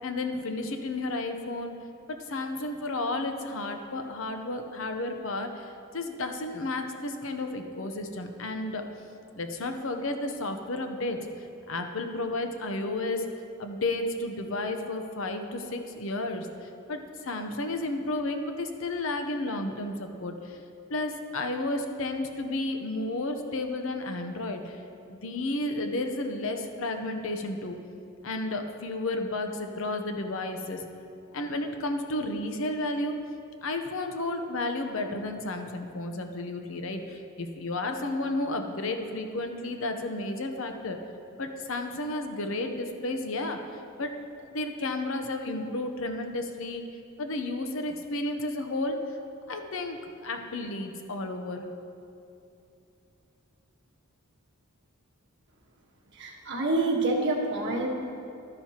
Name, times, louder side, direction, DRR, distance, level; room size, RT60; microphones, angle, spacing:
voice 1, 0.0-1.7 2.1-8.8 9.3-13.3 13.6-20.6 20.9-24.8 25.1-27.8 28.2-30.8 31.3-33.2 33.6-41.0 41.4-46.8 47.2-49.0 49.5-51.7, left 2 dB, 65° left, 6 dB, 0.8 m, -32 dB
voice 2, 56.1-57.9, right 2 dB, 55° right, -1 dB, 1.4 m, -27 dB
12.0 x 10.5 x 2.9 m, 2.7 s
head